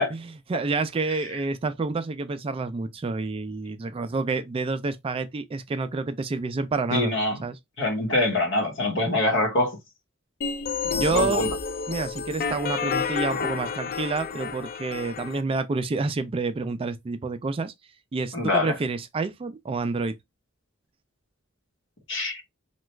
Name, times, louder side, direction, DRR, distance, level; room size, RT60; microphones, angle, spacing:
voice 1, 0.1-7.6 10.9-11.5 11.9-17.7 18.1-20.1, right 3 dB, 25° right, 0.3 m, -28 dB
voice 2, 6.9-7.4 7.8-9.8 10.8-11.5 18.3-18.7 22.1-22.4, left 2 dB, 65° left, 1.1 m, -24 dB
sound 1, 10.4-15.4, left 5 dB, 45° left, 0.4 m, -30 dB
3.0 x 2.3 x 3.2 m
head